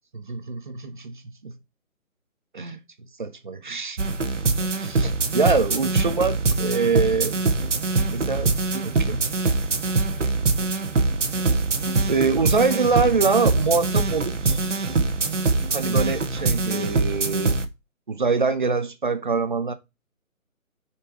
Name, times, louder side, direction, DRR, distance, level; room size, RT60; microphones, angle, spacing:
voice 1, 0.3-1.5 2.5-2.8 3.2-4.0 4.8-7.4 8.1-9.3 12.1-14.8 15.7-17.6 18.1-19.7, right 4 dB, 35° right, 0.7 m, -24 dB
sound 1, 4.0-17.7, right 3 dB, 60° right, 1.2 m, -23 dB
6.2 x 4.6 x 4.7 m
figure-of-eight pair, 145°, 42 cm